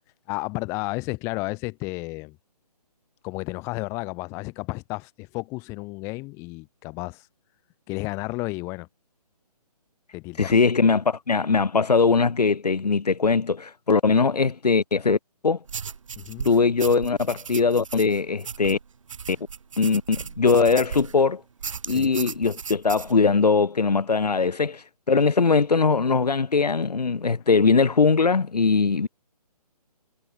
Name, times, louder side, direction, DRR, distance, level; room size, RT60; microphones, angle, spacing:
voice 1, 0.3-2.4 3.2-7.3 7.9-8.9 10.1-10.5 16.2-16.5 21.9-22.1, left 25 dB, 15° left, 5.0 m, -32 dB
voice 2, 10.4-15.2 15.4-15.6 16.4-18.8 19.3-19.4 19.8-21.4 21.9-29.1, left 4 dB, 80° left, 4.0 m, -21 dB
sound 1, 15.7-21.2 21.6-23.1, right 6 dB, 50° right, 7.0 m, -36 dB
hypercardioid pair, 170°, 20 cm